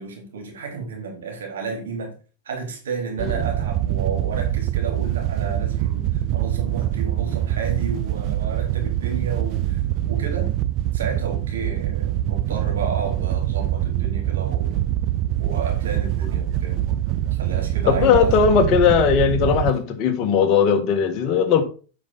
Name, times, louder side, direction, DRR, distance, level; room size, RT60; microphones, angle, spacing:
voice 1, 0.0-2.1 2.5-10.5 10.9-14.8 15.4-16.9 17.3-18.4, right 4 dB, 75° right, 1 dB, 3.6 m, -32 dB
Wind / Boat Water vehicle, 3.2-19.7, right 13 dB, 45° right, 0.5 m, -24 dB
voice 2, 17.9-21.6, left 7 dB, 45° left, 6 dB, 1.8 m, -18 dB
8.3 x 5.8 x 4.2 m, 0.37 s
hypercardioid pair, 100°, 0 cm